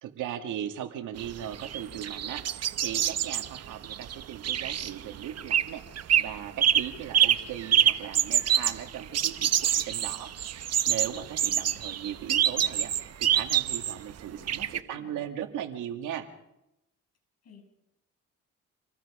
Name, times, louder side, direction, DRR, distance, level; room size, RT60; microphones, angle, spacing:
voice 1, 0.0-16.3, right 10 dB, 85° right, 6 dB, 2.2 m, -38 dB
sound 1, 1.2-5.7 6.0-6.3 6.6-14.0 14.5-14.8, right 10 dB, 55° right, 1.0 m, -26 dB
voice 2, 14.3-15.2 17.4-17.6, left 6 dB, 55° left, 4 dB, 6.8 m, -54 dB
28.0 x 19.5 x 5.0 m, 0.87 s
cardioid pair, 90°, 30 cm